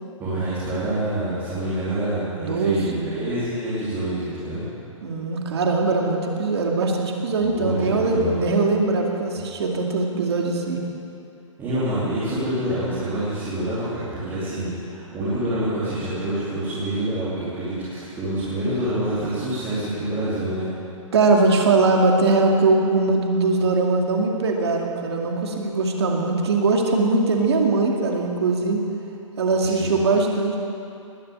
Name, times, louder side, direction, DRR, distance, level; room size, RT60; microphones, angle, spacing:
voice 1, 0.2-4.6 7.4-8.4 11.6-20.6 29.6-29.9, right 1 dB, 10° right, -12 dB, 3.0 m, -27 dB
voice 2, 2.4-3.1 5.0-10.8 21.1-28.8 29.4-30.6, right 3 dB, 50° right, 1 dB, 2.4 m, -21 dB
20.0 x 7.7 x 8.7 m, 2.7 s
hypercardioid pair, 175°, 17 cm